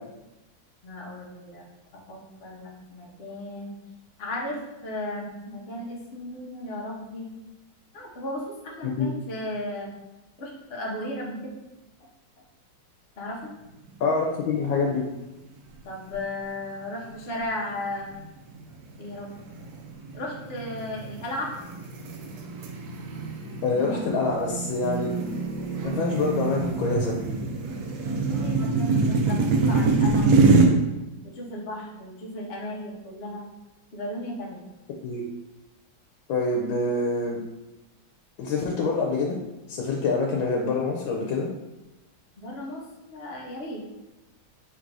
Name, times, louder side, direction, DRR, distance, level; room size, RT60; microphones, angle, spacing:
voice 1, 0.8-1.7 1.9-3.7 4.2-7.3 7.9-9.9 10.4-11.6 13.2-13.5 15.8-18.1 19.0-19.3 20.1-21.5 28.1-30.7 31.3-33.4 33.9-34.6 42.4-42.8 43.1-43.8, left 1 dB, 50° left, -2 dB, 0.7 m, -35 dB
voice 2, 14.0-15.0 23.6-25.2 25.8-27.4 35.0-35.2 36.3-37.4 38.4-39.4 39.7-41.5, left 3 dB, 85° left, 0 dB, 1.4 m, -26 dB
sound 1, 14.2-14.7 15.1-15.2 15.9-16.4 16.9-17.2 17.8-30.7, right 3 dB, 70° right, 0.9 m, -25 dB
3.5 x 2.6 x 4.6 m, 0.99 s
omnidirectional pair, 2.1 m